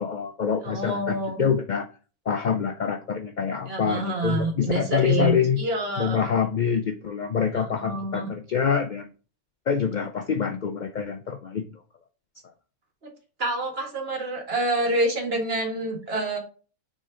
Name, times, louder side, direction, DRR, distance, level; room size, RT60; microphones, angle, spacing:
voice 1, 0.0-1.9 2.3-5.6 6.0-9.1 9.7-11.6, left 7 dB, 80° left, 8 dB, 0.4 m, -26 dB
voice 2, 0.6-1.5 3.7-6.4 7.6-8.3 13.4-16.4, right 2 dB, 45° right, 1 dB, 1.9 m, -27 dB
7.0 x 3.8 x 3.8 m, 0.38 s
omnidirectional pair, 1.4 m